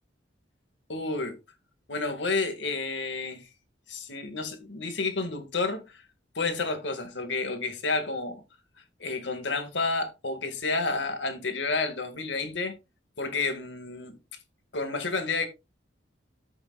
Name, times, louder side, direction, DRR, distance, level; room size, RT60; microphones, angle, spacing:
voice 1, 0.9-1.4 1.9-3.5 3.9-6.0 6.4-8.4 9.0-12.7 13.2-14.2 14.7-15.5, left 3 dB, 70° left, 2.0 m, -30 dB
14.0 x 7.0 x 2.4 m
head